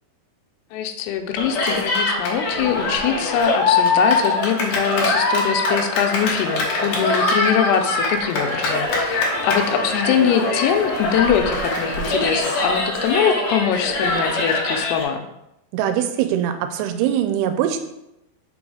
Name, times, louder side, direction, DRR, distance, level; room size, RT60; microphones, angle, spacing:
voice 1, 0.7-15.2, left 8 dB, 90° left, 5 dB, 2.6 m, -22 dB
Cheering, 1.4-15.0, left 2 dB, 65° left, 1.7 m, -22 dB
voice 2, 15.7-17.8, right 10 dB, 90° right, 8 dB, 2.6 m, -22 dB
6.1 x 3.9 x 4.8 m, 0.87 s
omnidirectional pair, 4.6 m